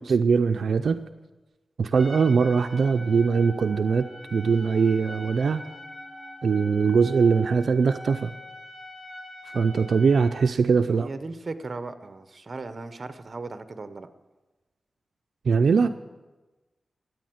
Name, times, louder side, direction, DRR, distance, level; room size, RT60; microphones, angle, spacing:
voice 1, 0.1-1.0 1.8-5.6 6.4-8.3 9.5-11.1 15.5-15.9, right 5 dB, 85° right, 7 dB, 0.5 m, -21 dB
Trumpet, 1.9-10.4, left 1 dB, 5° left, 5.2 m, -43 dB
Wind instrument woodwind instrument, 2.9-7.7, equal, 20° right, 3.2 m, -53 dB
voice 2, 10.8-14.1, right 3 dB, 45° right, 10 dB, 1.0 m, -37 dB
13.5 x 9.3 x 7.8 m, 1.2 s
wide cardioid pair, 95°, 0 cm